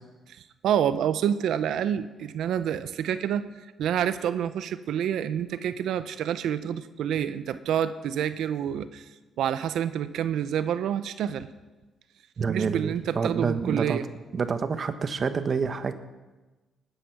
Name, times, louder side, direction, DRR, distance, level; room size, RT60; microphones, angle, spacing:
voice 1, 0.3-3.5 3.8-9.0 9.4-11.5 12.5-14.1, right 9 dB, 80° right, 12 dB, 0.8 m, -28 dB
voice 2, 12.4-14.0 14.3-16.0, right 5 dB, 45° right, 10 dB, 1.2 m, -28 dB
19.0 x 9.9 x 6.1 m, 1.2 s
cardioid pair, 90°, 0 cm